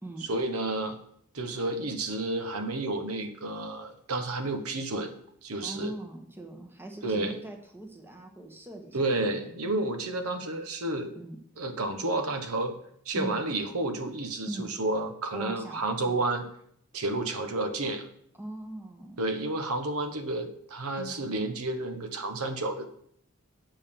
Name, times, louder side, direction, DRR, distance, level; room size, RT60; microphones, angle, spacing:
voice 1, 0.2-1.0 1.3-5.1 5.4-5.9 7.0-7.4 8.9-11.1 11.6-12.8 13.1-16.4 16.9-18.1 19.2-22.9, right 2 dB, 90° right, 7 dB, 1.1 m, -31 dB
voice 2, 5.6-9.1 11.1-11.4 13.1-13.5 14.5-14.7 15.3-16.2 18.4-19.2 21.0-21.4, right 1 dB, 10° right, 2 dB, 1.2 m, -41 dB
7.6 x 5.4 x 6.9 m, 0.68 s
head